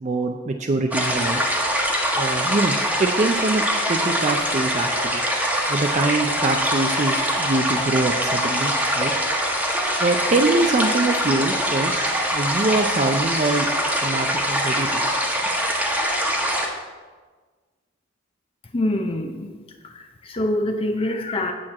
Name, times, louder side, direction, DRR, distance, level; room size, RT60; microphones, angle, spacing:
voice 1, 0.0-1.4 2.2-5.2 5.7-9.1 10.0-12.0 12.3-13.7 14.0-15.1, right 2 dB, 40° right, 5 dB, 0.4 m, -24 dB
sound 1, 0.9-16.7, equal, 10° right, 1.1 m, -23 dB
voice 2, 18.7-19.5 19.8-21.5, left 1 dB, 30° left, 5 dB, 0.5 m, -25 dB
8.8 x 4.4 x 7.3 m, 1.4 s
head